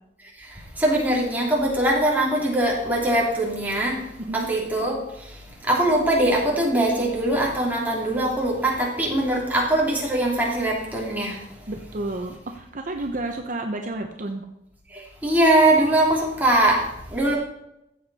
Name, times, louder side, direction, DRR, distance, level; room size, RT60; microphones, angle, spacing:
voice 1, 0.4-11.4 14.9-17.3, right 1 dB, 10° right, -3 dB, 3.1 m, -22 dB
voice 2, 11.7-14.4, right 2 dB, 50° right, 4 dB, 0.9 m, -31 dB
14.5 x 8.1 x 4.2 m, 0.84 s
head